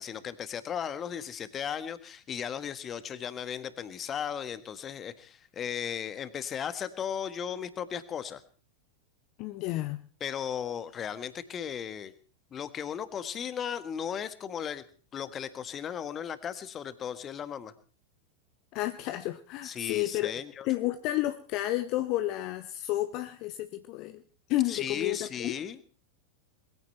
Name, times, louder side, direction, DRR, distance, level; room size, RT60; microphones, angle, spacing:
voice 1, 0.0-8.4 10.2-12.1 12.5-14.8 15.1-17.7 19.6-20.7 24.7-25.8, left 8 dB, 25° left, 13 dB, 1.6 m, -36 dB
voice 2, 9.4-10.0 18.7-20.3 20.7-24.2 24.5-25.5, left 15 dB, 40° left, 10 dB, 1.0 m, -31 dB
21.5 x 15.5 x 4.5 m, 0.39 s
figure-of-eight pair, 90°, 0 cm